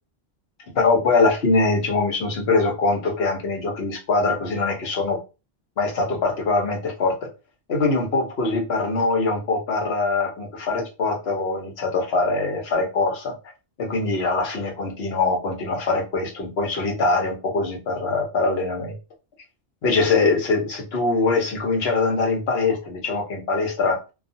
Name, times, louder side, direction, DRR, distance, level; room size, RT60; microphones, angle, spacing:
voice 1, 0.7-5.2 5.8-7.3 7.7-13.3 13.8-19.0 19.8-24.0, left 3 dB, 75° left, 1 dB, 1.1 m, -23 dB
2.4 x 2.3 x 2.6 m, 0.29 s
omnidirectional pair, 1.1 m